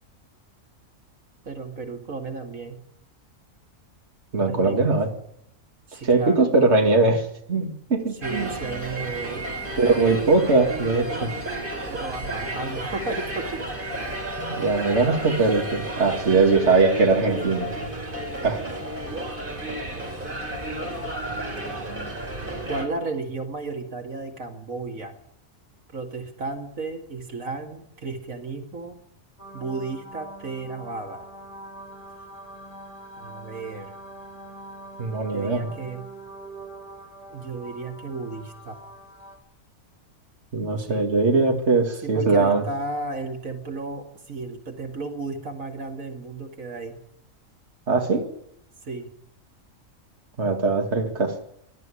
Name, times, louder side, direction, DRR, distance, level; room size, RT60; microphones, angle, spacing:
voice 1, 1.4-2.8 4.5-5.0 5.9-6.5 8.2-9.5 11.9-13.6 17.1-17.9 22.6-25.1 25.9-29.0 29.5-31.3 33.2-33.9 35.3-36.0 37.3-38.8 40.8-41.1 42.0-46.9 48.8-49.1, right 3 dB, 80° right, 4 dB, 2.7 m, -34 dB
voice 2, 4.3-5.1 6.0-8.5 9.8-11.3 14.5-17.7 18.4-18.6 35.0-35.7 40.5-42.6 47.9-48.3 50.4-51.3, right 3 dB, 55° right, 3 dB, 2.5 m, -21 dB
sound 1, 8.2-22.9, right 1 dB, 40° right, 3.6 m, -32 dB
sound 2, 29.4-39.4, right 1 dB, 25° left, 5.4 m, -43 dB
21.5 x 12.5 x 9.9 m, 0.74 s
omnidirectional pair, 1.4 m